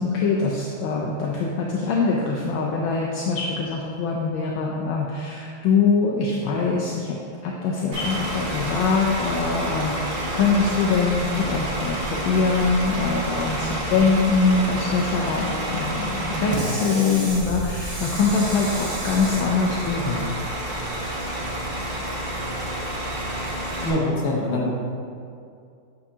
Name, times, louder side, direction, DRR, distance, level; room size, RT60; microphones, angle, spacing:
voice 1, 0.0-7.2 7.4-20.4, left 4 dB, 75° left, -2 dB, 1.3 m, -23 dB
Bus / Idling, 7.9-23.9, right 1 dB, 45° right, 0.7 m, -29 dB
voice 2, 23.8-24.7, left 1 dB, 55° left, -2 dB, 1.4 m, -24 dB
8.2 x 4.7 x 2.8 m, 2.4 s
omnidirectional pair, 2.4 m